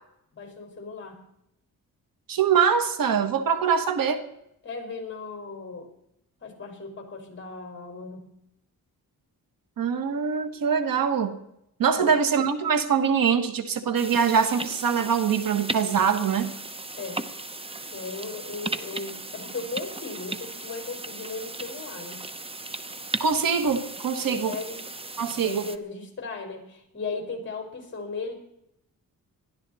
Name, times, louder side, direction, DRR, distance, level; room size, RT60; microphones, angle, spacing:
voice 1, 0.3-1.2 4.6-5.9 6.4-8.3 11.9-12.1 17.0-17.2 17.9-22.2 24.3-24.8 25.4-28.3, left 4 dB, 35° left, 2 dB, 4.7 m, -36 dB
voice 2, 2.3-4.2 9.8-11.4 11.8-16.5 23.2-24.5 25.2-25.7, right 6 dB, 80° right, 9 dB, 1.5 m, -23 dB
sound 1, 13.9-25.8, right 2 dB, 15° right, 0.8 m, -36 dB
21.0 x 13.5 x 4.2 m, 0.79 s
wide cardioid pair, 120°, 34 cm